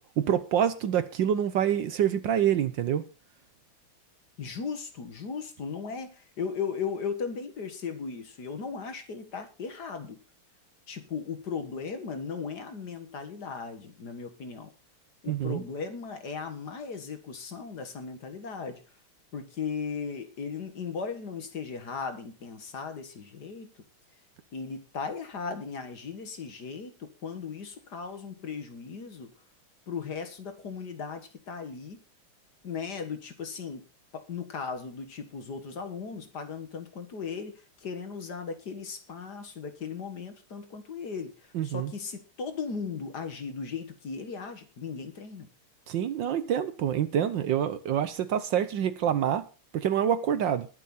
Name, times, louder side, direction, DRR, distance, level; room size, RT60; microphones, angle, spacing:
voice 1, 0.2-3.0 15.3-15.6 41.5-41.9 45.9-49.5 49.7-50.7, right 9 dB, 65° right, 1.4 m, -26 dB
voice 2, 4.4-10.2 10.9-14.7 15.2-18.8 19.3-23.7 24.5-29.3 29.9-32.0 32.6-33.9 34.1-41.3 41.6-45.5, left 5 dB, 50° left, 2.0 m, -37 dB
20.5 x 7.2 x 4.2 m
omnidirectional pair, 2.4 m